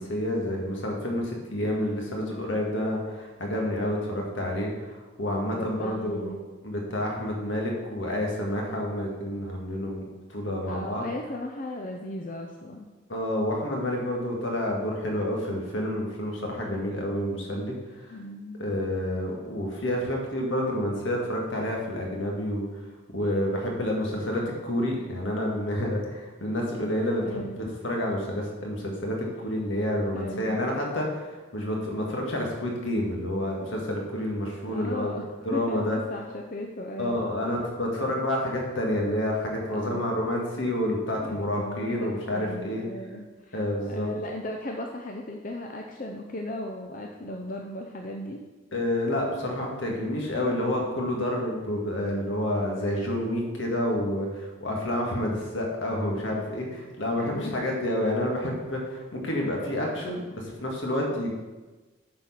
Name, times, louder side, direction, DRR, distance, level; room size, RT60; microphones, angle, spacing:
voice 1, 0.0-6.3 6.6-10.0 10.3-11.0 13.1-18.2 18.6-22.7 23.1-35.1 35.4-36.0 37.0-42.8 43.5-44.1 48.7-61.4, left 1 dB, 75° left, -1 dB, 1.9 m, -29 dB
voice 2, 5.5-6.4 10.7-12.9 18.1-18.6 27.2-27.7 30.1-30.7 34.7-37.3 39.7-40.4 41.2-43.6 43.9-48.4 57.1-57.5, left 1 dB, 40° left, 2 dB, 0.6 m, -37 dB
8.7 x 4.5 x 5.8 m, 1.2 s
head